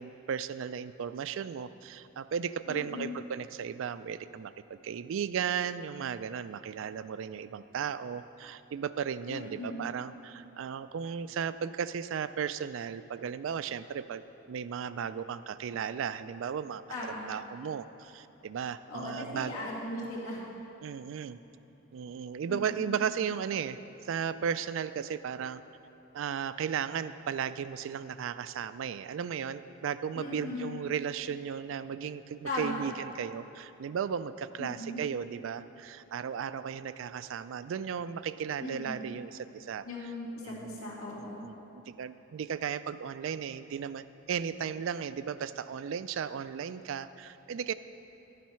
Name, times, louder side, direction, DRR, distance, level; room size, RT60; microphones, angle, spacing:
voice 1, 0.0-16.8 17.1-19.6 20.8-21.4 21.9-23.8 24.0-25.6 26.1-39.9 40.4-40.8 41.2-47.7, right 7 dB, 65° right, 14 dB, 0.3 m, -35 dB
voice 2, 2.7-3.1 9.3-9.8 16.9-17.2 18.9-20.4 22.5-22.9 30.1-30.8 32.4-32.8 34.6-35.0 38.6-39.0 39.8-41.4, left 2 dB, 85° left, -5 dB, 2.3 m, -38 dB
10.5 x 7.5 x 5.6 m, 2.9 s
head